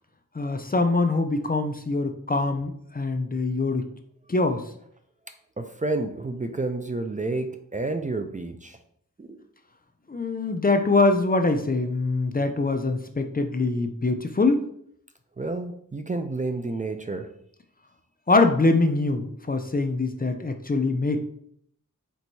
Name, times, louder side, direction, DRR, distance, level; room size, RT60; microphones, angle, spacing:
voice 1, 0.3-3.9 4.3-4.6 10.1-14.6 18.3-21.2, left 3 dB, 30° left, 7 dB, 0.5 m, -23 dB
voice 2, 5.6-8.8 9.2-9.4 15.4-17.3, right 2 dB, 25° right, 7 dB, 0.4 m, -30 dB
4.5 x 4.3 x 2.7 m, 0.68 s
wide cardioid pair, 65°, 32 cm